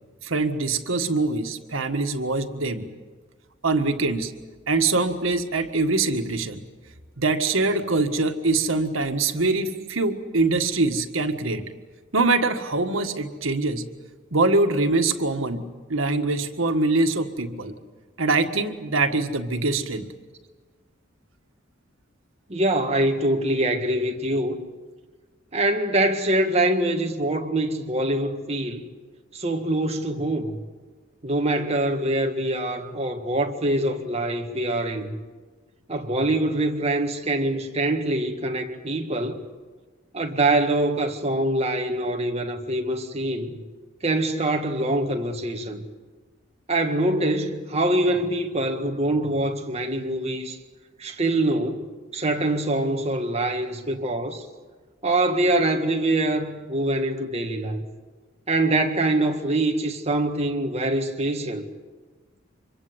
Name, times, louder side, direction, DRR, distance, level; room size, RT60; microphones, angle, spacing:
voice 1, 0.2-2.9 3.6-4.3 4.7-6.6 7.2-11.6 12.1-13.9 14.3-17.7 18.2-20.1, right 3 dB, 85° right, 1.7 m, -23 dB
voice 2, 22.5-24.6 25.5-28.8 29.3-30.6 31.2-35.2 35.9-39.4 40.1-43.6 44.0-45.8 46.7-50.6 51.0-54.5 55.0-57.8 58.5-61.6, right 1 dB, 30° right, 1.8 m, -24 dB
26.0 x 23.0 x 8.0 m
head